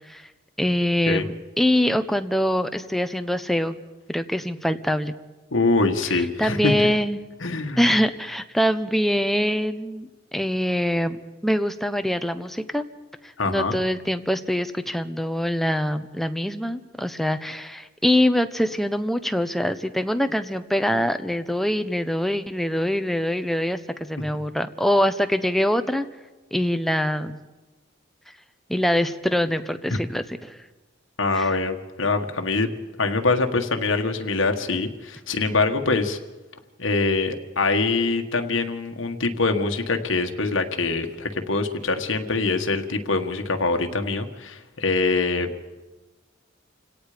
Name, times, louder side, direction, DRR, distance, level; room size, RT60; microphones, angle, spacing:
voice 1, 0.6-3.8 4.1-5.1 6.4-7.2 7.8-12.8 13.5-23.8 24.1-26.1 26.5-27.4 28.7-30.6 31.4-31.5, equal, ahead, 8 dB, 0.8 m, -24 dB
voice 2, 5.5-6.8 7.4-7.8 13.4-13.7 31.2-32.7 33.0-36.2 36.8-45.5, left 3 dB, 75° left, 5 dB, 1.6 m, -24 dB
29.0 x 17.5 x 5.1 m, 1.2 s
head